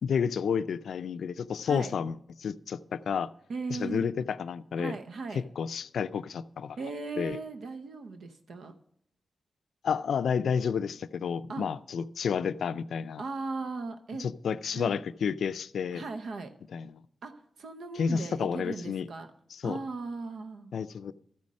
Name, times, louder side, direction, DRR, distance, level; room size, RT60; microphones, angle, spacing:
voice 1, 0.0-3.3 3.7-5.0 5.3-6.8 7.2-7.4 9.8-13.2 14.2-16.0 16.7-16.9 18.0-19.1 19.5-19.8 20.7-21.1, left 6 dB, 90° left, 14 dB, 0.3 m, -31 dB
voice 2, 3.5-4.1 4.8-5.4 6.8-8.7 11.5-11.7 13.2-14.3 14.7-14.9 15.9-16.6 17.2-19.3 19.6-20.7, right 3 dB, 80° right, 7 dB, 0.7 m, -37 dB
13.0 x 5.3 x 7.3 m, 0.69 s
cardioid pair, 75°, 0 cm